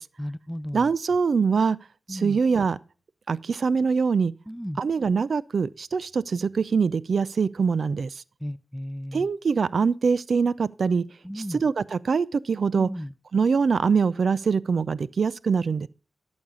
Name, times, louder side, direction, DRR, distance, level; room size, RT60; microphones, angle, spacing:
voice 1, 0.2-0.8 2.1-2.4 4.5-4.8 8.4-9.3 11.2-11.6 12.7-13.1, equal, ahead, 0.5 m, -34 dB
voice 2, 0.7-1.8 2.1-2.8 3.3-4.3 4.8-8.2 9.1-11.1 11.4-12.9 13.3-15.9, right 5 dB, 65° right, 0.4 m, -23 dB
11.5 x 7.2 x 3.7 m
wide cardioid pair, 80°, 0 cm